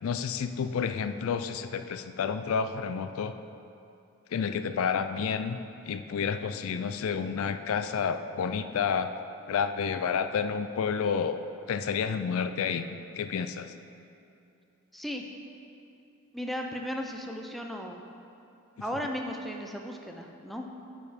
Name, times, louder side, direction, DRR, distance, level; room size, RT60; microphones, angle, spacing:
voice 1, 0.0-3.3 4.3-5.6 5.9-9.1 9.5-11.4 11.7-13.7, left 6 dB, 65° left, 10 dB, 0.4 m, -30 dB
voice 2, 14.9-15.2 16.3-18.0 18.8-20.7, equal, ahead, 2 dB, 0.5 m, -35 dB
9.0 x 5.4 x 4.9 m, 2.7 s
head